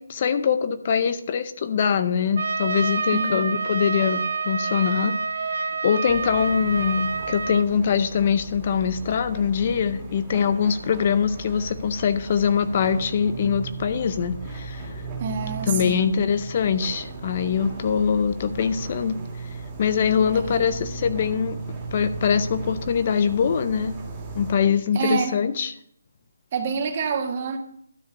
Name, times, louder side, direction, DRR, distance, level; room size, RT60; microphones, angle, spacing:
voice 1, 0.0-15.0 15.7-19.4 19.8-21.6 21.9-24.0 24.4-25.7, left 7 dB, 35° left, 11 dB, 0.6 m, -23 dB
Trumpet, 2.4-7.7, right 4 dB, 65° right, 0.8 m, -27 dB
sound 1, 6.1-24.5, right 3 dB, 10° right, 2.4 m, -36 dB
voice 2, 15.2-16.1 20.3-20.7 24.9-25.3 26.5-27.6, right 5 dB, 35° right, 5 dB, 1.5 m, -27 dB
12.5 x 4.9 x 6.5 m, 0.67 s
hypercardioid pair, 165°, 0 cm